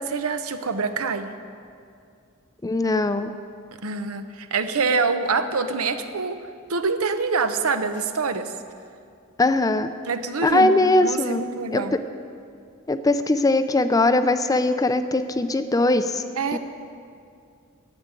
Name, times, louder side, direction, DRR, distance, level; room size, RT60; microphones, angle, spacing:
voice 1, 0.0-1.3 3.8-6.4 6.7-8.5 10.1-10.7 11.0-12.0 16.4-16.6, right 4 dB, 90° right, 9 dB, 0.8 m, -25 dB
voice 2, 2.6-3.3 9.4-9.9 10.4-11.4 11.7-11.8 12.9-16.2 16.5-16.6, left 2 dB, 15° left, 10 dB, 0.4 m, -20 dB
10.5 x 7.8 x 9.6 m, 2.4 s
head